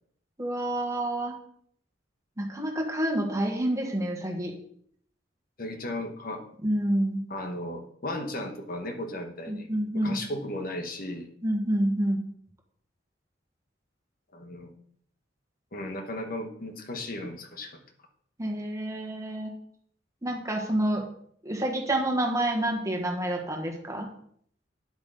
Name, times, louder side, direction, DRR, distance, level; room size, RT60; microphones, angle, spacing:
voice 1, 0.4-1.3 2.4-4.5 6.6-7.2 9.5-10.1 11.4-12.2 18.4-19.5 20.2-21.0 21.4-24.1, right 1 dB, 20° right, 1 dB, 1.6 m, -28 dB
voice 2, 5.6-6.5 7.3-9.7 10.0-11.3 14.3-14.7 15.7-17.8, left 1 dB, 55° left, 5 dB, 1.2 m, -35 dB
9.9 x 8.4 x 3.9 m, 0.64 s
head